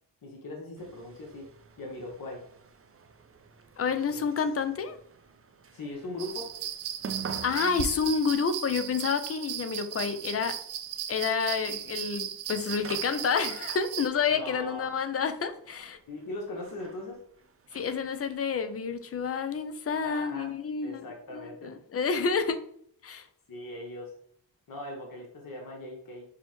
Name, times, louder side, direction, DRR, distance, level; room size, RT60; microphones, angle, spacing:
voice 1, 0.2-1.5 1.8-2.4 4.1-4.2 5.7-6.5 7.3-7.6 14.3-14.9 16.1-17.2 20.0-20.5 20.8-21.7 23.5-24.1 24.7-26.2, left 1 dB, 50° left, 1.0 m, -40 dB
sound 1, 0.8-18.4, right 5 dB, 30° right, 0.5 m, -47 dB
voice 2, 3.8-5.0 7.4-10.6 11.1-16.0 17.7-22.6 23.0-23.3, left 5 dB, 35° left, 0.5 m, -29 dB
sound 2, 6.2-14.1, right 11 dB, 85° right, 0.5 m, -37 dB
6.1 x 2.1 x 3.0 m
cardioid pair, 60°, 45 cm